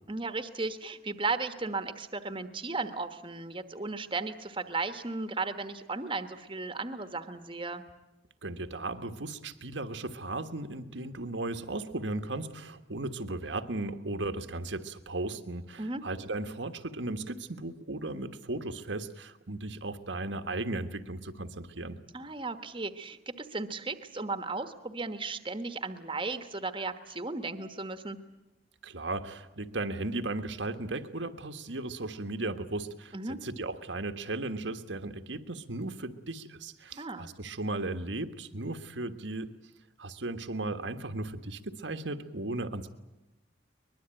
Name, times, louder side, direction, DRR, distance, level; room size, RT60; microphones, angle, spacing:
voice 1, 0.1-7.8 15.8-16.0 22.1-28.2 33.1-33.4 37.0-37.3, right 3 dB, 25° right, 9 dB, 1.3 m, -35 dB
voice 2, 8.4-22.0 28.8-39.5 40.0-42.9, right 2 dB, 75° right, 8 dB, 1.5 m, -36 dB
23.0 x 21.5 x 9.0 m, 0.98 s
head